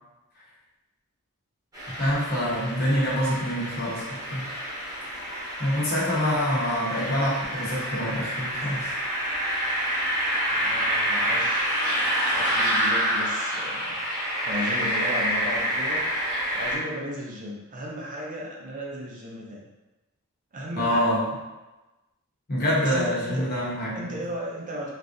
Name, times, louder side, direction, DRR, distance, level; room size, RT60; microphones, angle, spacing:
sound 1, 1.7-16.8, equal, 15° right, 0.9 m, -28 dB
voice 1, 2.0-4.4 5.6-8.9 20.8-21.3 22.5-24.2, equal, 45° left, -7 dB, 0.9 m, -26 dB
voice 2, 10.5-11.8 12.3-14.0 14.4-16.0 16.5-19.6 20.5-21.1 22.8-23.5 23.9-24.9, equal, 35° right, -3 dB, 0.5 m, -35 dB
3.4 x 2.4 x 2.6 m, 1.1 s
head